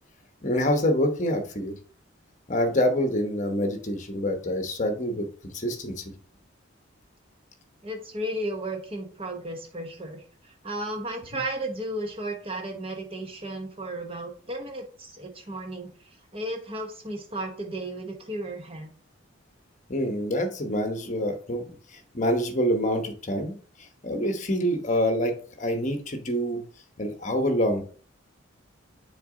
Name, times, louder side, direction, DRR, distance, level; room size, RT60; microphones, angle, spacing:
voice 1, 0.4-1.7 2.5-6.0 11.3-11.4 19.9-21.6 21.9-23.6 24.0-26.6 27.0-27.8, equal, 35° left, 5 dB, 1.0 m, -26 dB
voice 2, 7.8-15.9 16.3-18.9, right 1 dB, 30° right, 3 dB, 1.1 m, -34 dB
6.7 x 4.1 x 3.8 m, 0.43 s
head